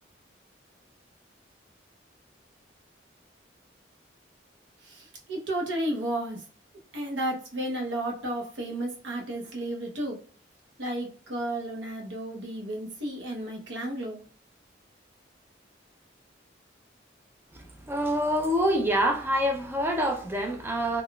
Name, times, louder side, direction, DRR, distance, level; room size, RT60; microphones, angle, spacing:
voice 1, 4.8-6.4 6.9-10.2 10.8-14.2, right 1 dB, 75° right, 0.8 m, -33 dB
voice 2, 17.9-21.0, equal, 10° right, 0.4 m, -26 dB
3.7 x 2.3 x 2.3 m
head